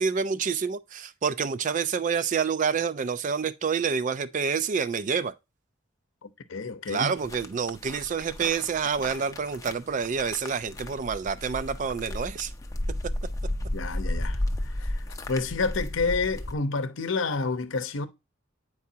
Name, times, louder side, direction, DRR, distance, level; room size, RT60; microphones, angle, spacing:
voice 1, 0.0-5.3 6.9-12.5, right 6 dB, 40° right, 0.3 m, -28 dB
voice 2, 6.2-7.1 13.7-14.4 14.8-18.1, left 4 dB, 70° left, 0.7 m, -29 dB
sound 1, 7.2-16.5, left 1 dB, 15° left, 0.5 m, -34 dB
8.4 x 4.7 x 2.7 m
head